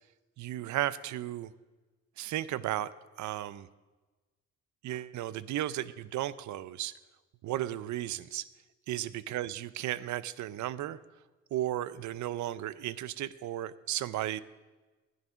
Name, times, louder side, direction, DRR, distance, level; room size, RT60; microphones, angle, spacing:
voice 1, 0.4-1.5 2.2-2.9 3.2-3.7 4.8-6.9 7.4-8.5 8.9-11.0 11.5-14.4, right 13 dB, 70° right, 18 dB, 0.6 m, -34 dB
11.0 x 9.5 x 6.2 m, 1.2 s
cardioid pair, 90°, 30 cm